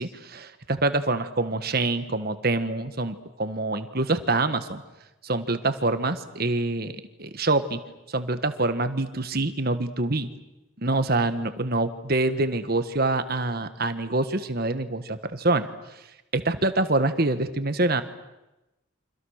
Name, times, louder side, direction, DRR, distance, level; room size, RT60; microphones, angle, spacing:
voice 1, 0.0-4.8 5.2-6.9 7.2-7.8 8.1-10.3 10.8-15.7 16.3-18.0, right 2 dB, 50° right, 10 dB, 1.5 m, -25 dB
28.5 x 25.5 x 6.6 m, 0.98 s
head